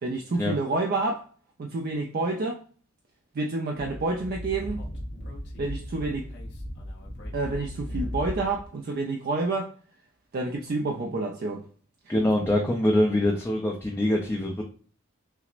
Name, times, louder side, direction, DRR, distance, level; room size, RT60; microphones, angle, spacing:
voice 1, 0.0-1.3 1.6-2.6 3.3-4.8 5.6-6.3 7.3-9.7 10.3-11.6, right 3 dB, 45° right, 0.4 m, -28 dB
Speech / Wind, 3.8-8.7, equal, 55° left, 0.8 m, -36 dB
voice 2, 12.1-14.6, left 1 dB, 10° left, 0.4 m, -24 dB
5.8 x 2.0 x 2.4 m
head